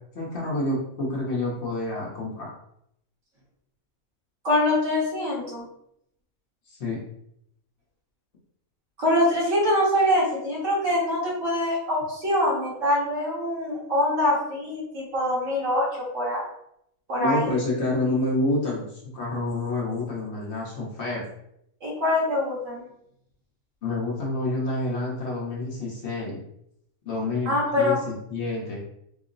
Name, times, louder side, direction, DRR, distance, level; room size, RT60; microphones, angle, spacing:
voice 1, 0.1-2.5 6.8-7.0 17.2-21.2 23.8-26.4 27.0-28.8, left 2 dB, 55° left, -4 dB, 1.0 m, -28 dB
voice 2, 4.4-5.6 9.0-16.4 17.1-17.5 21.8-22.8 27.4-28.0, left 1 dB, 65° right, -5 dB, 1.6 m, -24 dB
3.7 x 2.0 x 3.8 m, 0.75 s
omnidirectional pair, 1.5 m